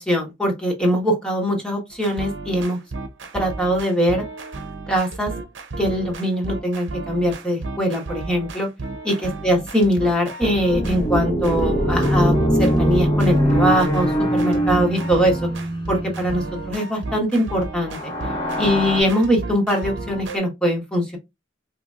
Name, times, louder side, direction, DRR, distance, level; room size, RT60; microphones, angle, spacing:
voice 1, 0.0-2.8 3.3-4.2 4.9-5.3 5.8-8.7 9.0-15.4 15.9-18.1 18.6-21.2, equal, 5° left, 1.3 m, -22 dB
sound 1, 1.9-20.4, right 2 dB, 75° right, 0.8 m, -33 dB
sound 2, 10.7-16.7 17.8-19.0, equal, 25° left, 1.3 m, -22 dB
4.2 x 2.9 x 2.4 m
head